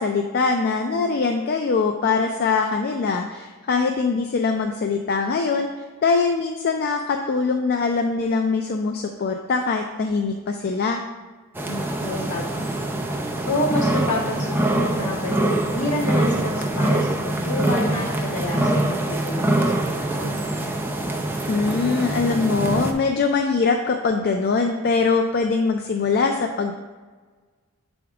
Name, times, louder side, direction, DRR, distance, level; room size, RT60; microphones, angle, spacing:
voice 1, 0.0-5.7 6.0-11.0 21.5-26.7, left 4 dB, 45° left, 4 dB, 0.4 m, -22 dB
sound 1, 11.5-22.9, right 1 dB, 10° right, 0.5 m, -24 dB
voice 2, 11.7-12.7 13.5-20.4, left 1 dB, 65° left, -6 dB, 1.8 m, -29 dB
7.0 x 3.5 x 4.7 m, 1.4 s
head